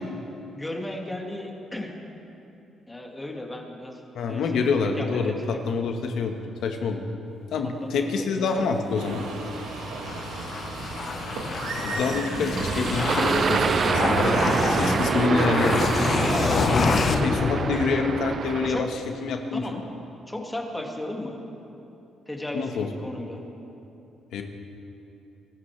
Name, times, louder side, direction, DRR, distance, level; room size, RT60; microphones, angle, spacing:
voice 1, 0.5-1.9 2.9-4.0 4.3-5.3 5.7-5.9 7.8-8.7 18.7-18.9 19.5-19.8 20.3-21.4 22.3-23.4, left 1 dB, 15° left, 1 dB, 2.2 m, -35 dB
voice 2, 4.1-7.1 7.5-9.2 11.8-15.8 16.4-18.9 19.2-19.8 22.5-22.9 24.3-24.4, left 4 dB, 75° left, 4 dB, 1.4 m, -27 dB
sound 1, 8.9-14.5, right 3 dB, 85° right, 1.3 m, -35 dB
sound 2, 9.1-18.4, left 5 dB, 50° left, 0.7 m, -27 dB
sound 3, 12.6-18.9, right 6 dB, 50° right, 0.4 m, -26 dB
24.0 x 13.0 x 3.4 m, 2.9 s
cardioid pair, 90°, 0 cm